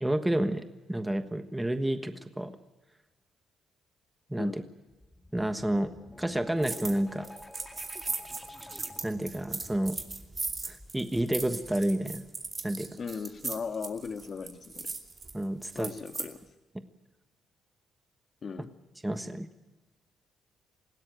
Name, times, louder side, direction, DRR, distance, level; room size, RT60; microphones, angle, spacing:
voice 1, 0.0-2.5 4.3-4.6 5.3-5.9 6.2-7.3 9.0-10.0 10.7-12.2 12.6-12.9 15.3-15.9 19.0-19.5, right 1 dB, 10° right, 8 dB, 1.3 m, -30 dB
sound 1, 4.9-12.5, left 1 dB, 10° left, 2.0 m, -50 dB
sound 2, 6.6-7.0 7.2-16.3, right 3 dB, 30° right, 2.6 m, -38 dB
voice 2, 13.0-14.9 15.8-16.4 18.4-18.7, left 5 dB, 45° left, 7 dB, 1.7 m, -37 dB
20.0 x 16.5 x 9.1 m, 1.1 s
cardioid pair, 90°, 0 cm